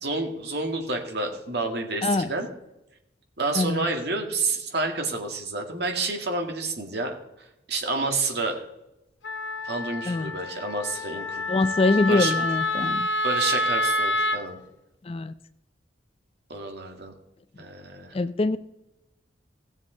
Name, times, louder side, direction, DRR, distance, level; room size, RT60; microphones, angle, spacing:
voice 1, 0.0-2.5 3.4-8.6 9.6-11.4 12.0-12.4 13.2-14.6 16.5-17.1 17.6-18.2, right 3 dB, 60° right, 3 dB, 1.9 m, -29 dB
Wind instrument woodwind instrument, 9.2-14.4, left 1 dB, 85° left, 0.9 m, -27 dB
voice 2, 11.5-13.1 15.1-15.3 18.1-18.6, left 3 dB, 30° left, 14 dB, 0.4 m, -24 dB
17.0 x 7.3 x 3.9 m, 0.89 s
head